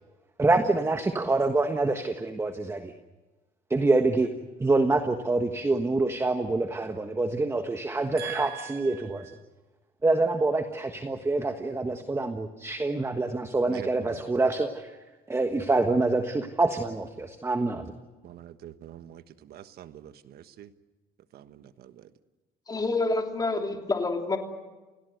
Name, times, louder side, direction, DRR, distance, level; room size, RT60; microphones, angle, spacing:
voice 1, 0.4-2.9 3.7-4.3 4.6-9.3 10.0-15.0 15.3-17.9, right 3 dB, 15° right, 7 dB, 1.4 m, -26 dB
voice 2, 8.2-9.3 13.7-14.3 18.2-20.7 21.3-22.1, right 13 dB, 70° right, 11 dB, 1.3 m, -44 dB
voice 3, 22.7-24.4, left 3 dB, 20° left, 3 dB, 3.3 m, -27 dB
30.0 x 17.0 x 8.0 m, 1.2 s
cardioid pair, 110°, 17 cm